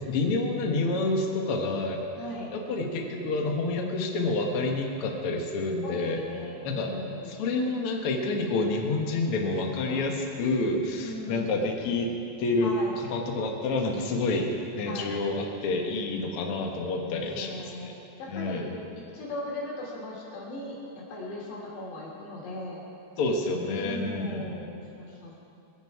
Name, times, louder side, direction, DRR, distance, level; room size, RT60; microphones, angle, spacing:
voice 1, 0.0-2.0 2.5-6.2 6.6-6.9 7.3-12.1 12.4-12.7 13.0-17.9 18.3-18.6 23.2-24.6, left 3 dB, 75° left, 1 dB, 1.3 m, -28 dB
voice 2, 2.2-2.5 5.8-7.4 9.4-9.5 9.8-10.1 11.0-11.6 12.6-13.0 14.9-15.2 17.2-17.9 18.2-18.8 19.1-20.8 21.1-22.8 23.8-25.4, left 1 dB, 90° left, -4 dB, 5.3 m, -38 dB
23.5 x 11.0 x 4.8 m, 2.6 s
omnidirectional pair, 4.8 m